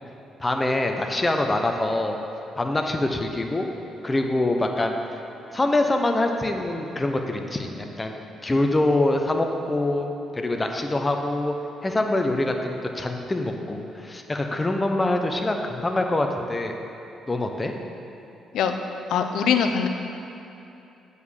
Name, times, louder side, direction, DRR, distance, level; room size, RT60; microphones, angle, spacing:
voice 1, 0.4-2.2 2.6-3.7 4.0-5.0 5.5-8.1 8.4-11.5 11.8-16.8 17.3-17.7, left 2 dB, 20° left, 4 dB, 0.8 m, -24 dB
voice 2, 19.1-19.9, left 7 dB, 80° left, 6 dB, 0.6 m, -22 dB
8.0 x 4.8 x 7.1 m, 2.9 s
cardioid pair, 90°, 0 cm